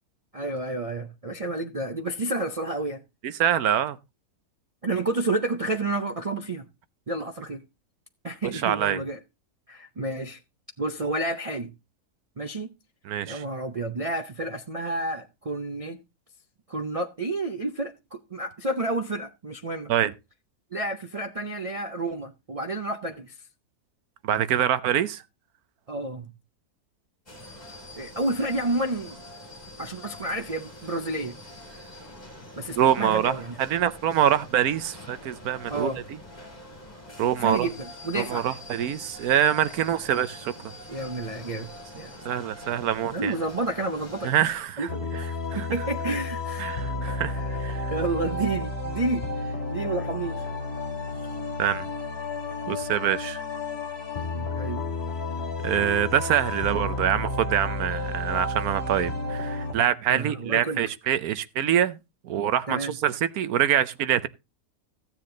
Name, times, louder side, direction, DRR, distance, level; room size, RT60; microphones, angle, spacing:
voice 1, 0.3-3.0 4.8-6.7 7.1-7.6 8.2-9.2 9.7-10.4 10.8-11.7 12.4-12.7 13.3-16.0 16.7-19.9 20.7-23.4 25.9-26.3 28.0-29.2 29.8-31.4 32.6-33.6 35.7-36.0 37.4-38.5 40.9-42.4 43.1-44.5 44.8-46.7 47.3-50.5 51.2-51.3 54.3-54.8 60.1-60.8 62.7-63.0, right 2 dB, 55° right, 0.4 m, -30 dB
voice 2, 3.2-4.0 8.5-9.0 13.0-13.4 19.9-20.1 24.2-25.2 32.8-36.2 37.2-37.7 38.2-40.7 42.2-43.3 44.2-44.9 45.1-45.2 45.5-45.7 46.6-47.9 51.6-51.9 52.7-53.4 55.6-62.0 62.2-64.3, right 10 dB, 75° right, 1.2 m, -25 dB
sound 1, 27.3-44.6, left 1 dB, 25° left, 3.6 m, -44 dB
sound 2, 44.9-59.7, left 2 dB, 40° left, 2.4 m, -31 dB
14.5 x 7.5 x 3.8 m
omnidirectional pair, 1.6 m